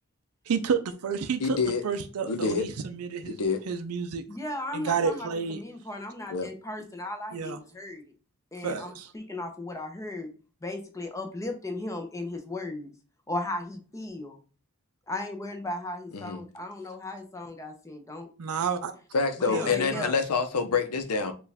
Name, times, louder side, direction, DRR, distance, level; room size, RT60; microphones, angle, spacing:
voice 1, 0.5-1.6 1.8-3.4 3.7-4.2 4.7-5.6 7.3-7.6 8.6-9.1 18.4-18.9 19.5-20.1, right 6 dB, 75° right, 0.4 m, -30 dB
voice 2, 1.4-1.8 2.3-2.7 3.3-3.6 6.3-6.5 16.1-16.4 19.1-21.3, left 5 dB, 85° left, 0.6 m, -27 dB
voice 3, 4.3-8.0 8.5-10.3 10.6-12.9 13.3-14.4 15.1-18.3 19.4-20.2, left 2 dB, 15° left, 0.7 m, -36 dB
4.5 x 2.4 x 3.4 m
head